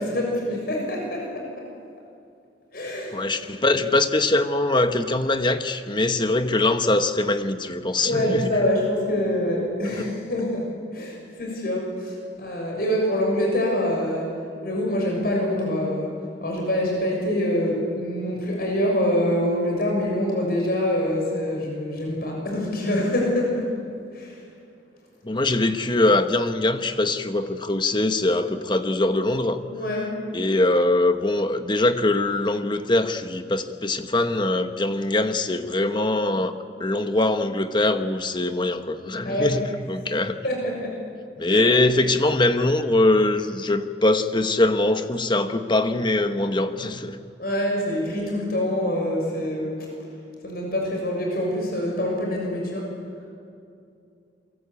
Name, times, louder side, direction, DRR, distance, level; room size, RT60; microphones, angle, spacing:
voice 1, 0.0-1.6 2.7-3.2 8.0-14.3 14.6-16.1 16.4-23.7 24.1-24.4 29.7-30.2 39.2-39.5 40.4-41.0 41.5-41.7 47.4-49.9 50.4-53.0, left 1 dB, 60° left, 0 dB, 6.7 m, -25 dB
voice 2, 3.1-8.6 9.9-10.1 25.2-29.6 30.3-36.5 36.8-40.4 41.4-47.2, left 2 dB, 25° left, 8 dB, 1.3 m, -22 dB
30.0 x 23.5 x 8.5 m, 2.5 s
head